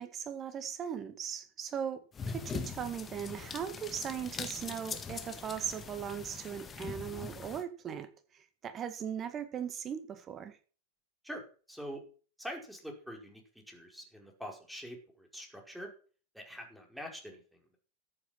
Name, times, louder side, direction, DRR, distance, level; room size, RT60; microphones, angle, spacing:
voice 1, 0.0-10.6, right 8 dB, 25° right, 1.9 m, -39 dB
sound 1, 2.1-7.6, left 5 dB, 20° left, 1.8 m, -42 dB
voice 2, 11.7-12.0 12.4-13.4 13.7-15.9 16.3-17.4, equal, ahead, 5.0 m, -44 dB
14.0 x 8.7 x 5.9 m
figure-of-eight pair, 90°, 0 cm